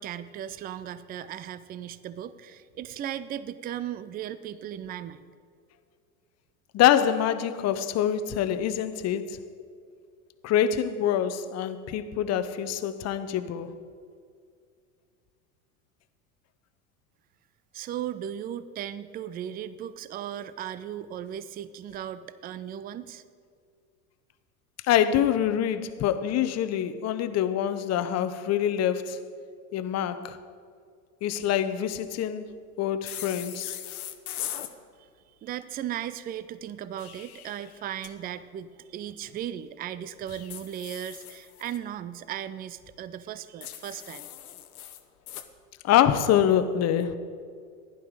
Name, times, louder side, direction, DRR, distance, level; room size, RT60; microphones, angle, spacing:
voice 1, 0.0-5.3 17.7-23.2 35.0-35.1 35.4-44.3, right 10 dB, 20° right, 0.5 m, -37 dB
voice 2, 6.7-9.4 10.4-13.8 24.9-29.2 29.7-30.4 31.2-32.5 32.8-33.8 45.8-47.2, left 10 dB, 35° left, 0.9 m, -25 dB
sound 1, 33.1-34.7 36.8-38.1 40.3-41.8 43.6-45.5, left 11 dB, 75° left, 1.0 m, -40 dB
15.5 x 11.0 x 4.8 m
hypercardioid pair, 80°, 44 cm